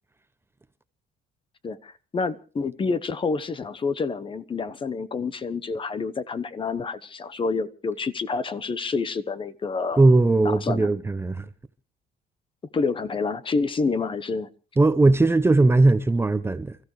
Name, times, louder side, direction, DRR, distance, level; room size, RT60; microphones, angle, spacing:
voice 1, 1.6-10.0 10.4-10.9 12.7-14.5, left 4 dB, 30° left, 1.0 m, -28 dB
voice 2, 10.0-11.5 14.8-16.8, right 2 dB, 15° right, 0.8 m, -19 dB
29.0 x 14.0 x 3.3 m
cardioid pair, 110°, 17 cm